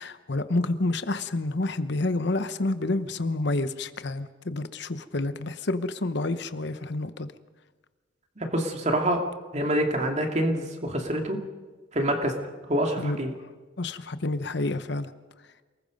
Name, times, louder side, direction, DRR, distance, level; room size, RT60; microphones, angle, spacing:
voice 1, 0.0-7.3 13.0-13.2 13.8-15.1, left 2 dB, 60° left, 12 dB, 0.9 m, -29 dB
voice 2, 8.4-9.2 9.5-11.4 11.9-12.3 12.7-13.3, right 1 dB, 35° right, 3 dB, 2.6 m, -26 dB
28.5 x 20.0 x 5.3 m, 1.4 s
head